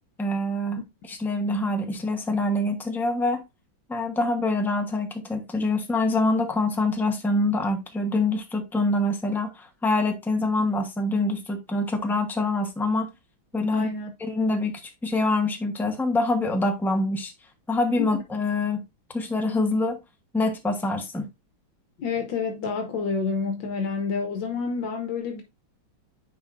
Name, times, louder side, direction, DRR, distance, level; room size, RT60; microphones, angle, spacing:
voice 1, 0.2-0.8 1.1-3.4 3.9-13.1 13.5-13.9 14.2-17.3 17.7-18.8 19.1-20.0 20.3-21.3, left 2 dB, ahead, 0.5 m, -25 dB
voice 2, 13.7-14.1 18.0-18.1 22.0-25.4, left 5 dB, 70° left, 1.6 m, -28 dB
9.4 x 4.4 x 2.5 m
omnidirectional pair, 2.1 m